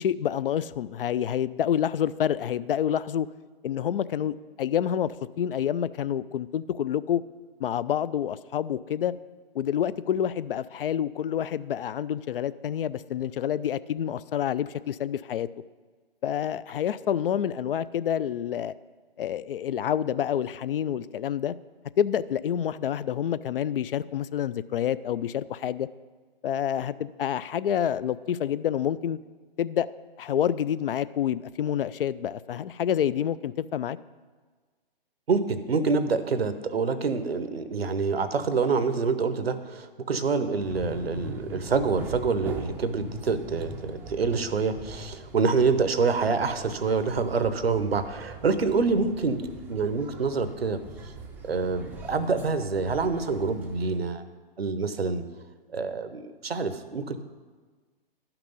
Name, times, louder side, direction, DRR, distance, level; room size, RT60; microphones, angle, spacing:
voice 1, 0.0-3.3 3.6-7.2 7.6-9.1 9.5-15.5 16.2-18.7 19.2-21.5 22.0-25.9 26.4-29.2 29.6-29.9 30.2-34.0, left 9 dB, 65° left, 17 dB, 0.4 m, -28 dB
voice 2, 35.3-50.8 51.4-54.2 54.6-55.2 55.7-57.2, right 4 dB, 90° right, 11 dB, 0.9 m, -26 dB
sound 1, 40.6-54.0, right 2 dB, 5° right, 0.4 m, -41 dB
11.5 x 5.9 x 5.3 m, 1.4 s
hypercardioid pair, 130°, 30 cm